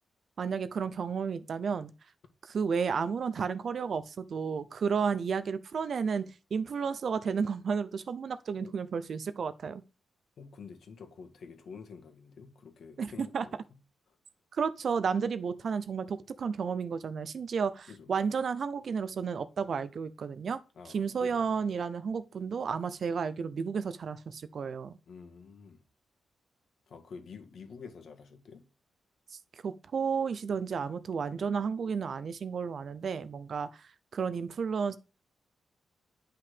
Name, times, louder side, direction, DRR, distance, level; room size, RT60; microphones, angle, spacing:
voice 1, 0.4-1.9 2.4-6.2 6.5-9.8 13.0-13.5 14.5-20.6 20.9-25.0 29.6-33.8 34.1-35.0, right 6 dB, 50° right, 0.6 m, -32 dB
voice 2, 10.4-13.6 14.1-14.2 17.9-18.1 20.8-21.7 25.1-25.8 26.9-28.7 31.2-31.4, left 5 dB, 60° left, 1.8 m, -49 dB
10.5 x 5.7 x 5.1 m
wide cardioid pair, 170°, 0 cm